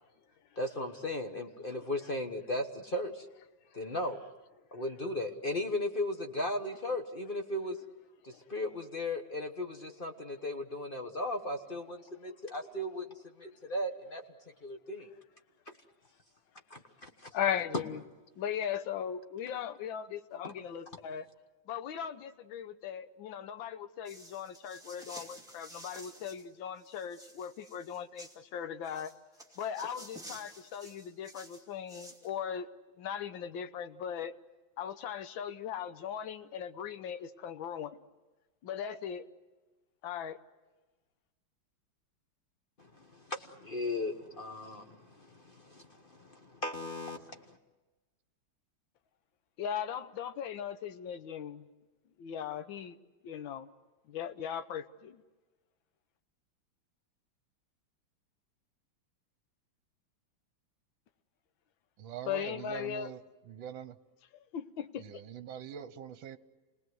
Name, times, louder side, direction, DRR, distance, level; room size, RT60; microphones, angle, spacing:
voice 1, 0.6-3.3 3.7-4.2 4.7-7.8 8.2-13.1 13.4-14.2 14.6-15.1 15.7-15.8 16.7-17.3 20.4-20.5 42.8-47.6, left 1 dB, 30° left, 5 dB, 1.1 m, -37 dB
voice 2, 17.3-18.0 18.4-21.3 21.7-29.2 29.6-32.7 33.0-34.3 34.8-38.0 38.6-39.2 40.0-40.4 49.6-51.6 52.2-53.0 53.2-53.7 54.1-55.2 62.3-63.1 64.5-65.0, left 8 dB, 70° left, 10 dB, 1.7 m, -38 dB
sound 1, 24.1-26.5 26.8-28.4 28.8-32.3, right 1 dB, ahead, 2.6 m, -51 dB
voice 3, 62.0-63.2 63.5-64.0 65.0-66.4, right 9 dB, 70° right, 12 dB, 1.7 m, -43 dB
29.5 x 19.0 x 7.9 m, 1.2 s
omnidirectional pair, 2.3 m